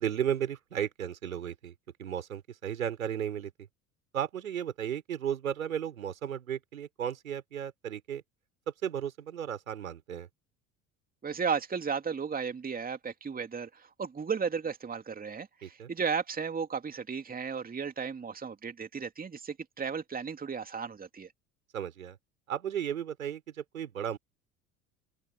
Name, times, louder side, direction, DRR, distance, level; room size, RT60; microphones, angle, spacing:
voice 1, 0.0-1.7 2.0-3.7 4.1-8.2 8.7-10.3 15.6-15.9 21.7-22.2 22.5-24.2, right 9 dB, 75° right, 4.4 m, -34 dB
voice 2, 11.2-21.3, right 6 dB, 20° right, 2.8 m, -34 dB
open air
figure-of-eight pair, 65°, 41 cm